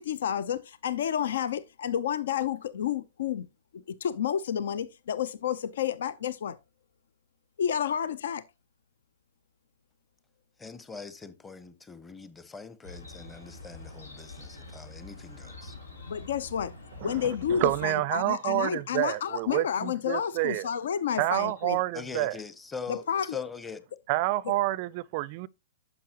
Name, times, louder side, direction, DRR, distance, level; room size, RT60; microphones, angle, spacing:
voice 1, 0.0-3.5 3.9-6.6 7.6-8.4 16.1-16.7 17.0-21.8 22.9-23.4, left 9 dB, 65° left, 0.6 m, -30 dB
voice 2, 10.6-15.7 21.9-23.8, left 5 dB, 10° left, 1.0 m, -42 dB
Chirp tweet, 12.8-17.9, left 2 dB, 90° left, 3.5 m, -45 dB
voice 3, 17.0-20.7 21.2-22.4 24.1-25.5, right 17 dB, 45° right, 0.4 m, -28 dB
10.0 x 7.2 x 2.9 m
hypercardioid pair, 115°, 0 cm